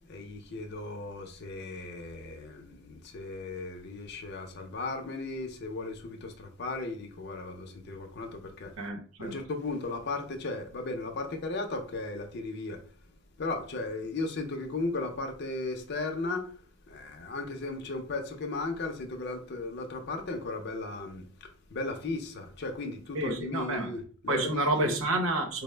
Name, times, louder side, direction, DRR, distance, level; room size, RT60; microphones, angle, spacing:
voice 1, 0.0-8.9 9.2-12.9 13.4-24.9, left 2 dB, 55° left, 0.5 m, -36 dB
voice 2, 8.8-9.3 23.1-23.9 24.3-25.6, right 2 dB, 85° right, 0.8 m, -29 dB
4.4 x 2.0 x 3.2 m
head